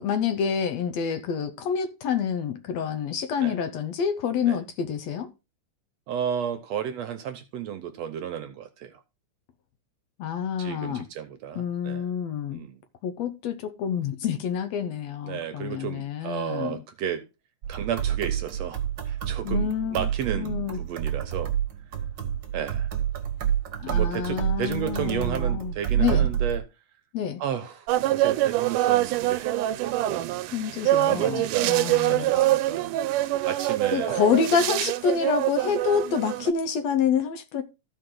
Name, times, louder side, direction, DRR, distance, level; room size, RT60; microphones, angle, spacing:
voice 1, 0.0-5.3 10.2-11.0 11.6-12.7 13.0-16.8 19.4-20.1 20.4-20.8 23.8-26.3 27.1-27.4 30.5-32.3 33.9-37.6, left 7 dB, 70° left, 1.9 m, -27 dB
voice 2, 6.1-8.9 10.6-12.1 12.5-12.8 15.2-17.2 17.7-18.8 19.1-21.5 22.5-22.9 23.8-26.6 27.4-29.5 30.0-30.3 31.1-33.0 33.4-34.4, right 9 dB, 70° right, 1.8 m, -33 dB
sound 1, 17.6-26.6, right 10 dB, 50° right, 1.5 m, -28 dB
sound 2, 27.9-36.5, right 15 dB, 85° right, 2.2 m, -25 dB
14.5 x 4.9 x 3.8 m
omnidirectional pair, 3.6 m